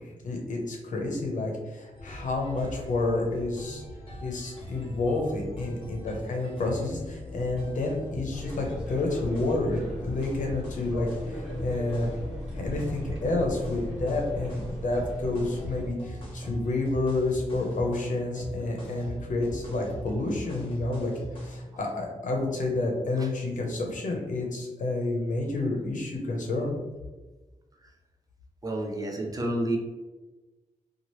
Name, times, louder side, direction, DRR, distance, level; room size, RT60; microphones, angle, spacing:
voice 1, 0.0-3.8 4.2-12.1 12.5-21.1 21.4-26.8, left 2 dB, 70° left, 0 dB, 0.7 m, -29 dB
sound 1, 1.9-21.8, left 1 dB, 40° left, 0.9 m, -40 dB
sound 2, 8.3-15.9, left 1 dB, 10° right, 1.0 m, -37 dB
voice 2, 28.6-29.8, right 1 dB, 30° right, 1 dB, 0.4 m, -29 dB
2.9 x 2.4 x 3.0 m, 1.2 s
wide cardioid pair, 155°, 13 cm